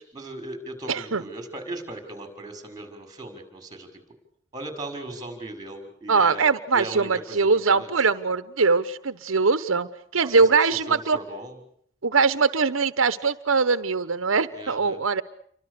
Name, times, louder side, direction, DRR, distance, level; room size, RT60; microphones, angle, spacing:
voice 1, 0.1-3.9 4.5-7.9 10.3-11.5 14.5-15.0, right 2 dB, 20° right, 6 dB, 6.1 m, -38 dB
voice 2, 0.9-1.2 6.1-11.2 12.0-15.2, right 4 dB, 85° right, 13 dB, 1.0 m, -22 dB
29.0 x 24.5 x 6.8 m, 0.66 s
head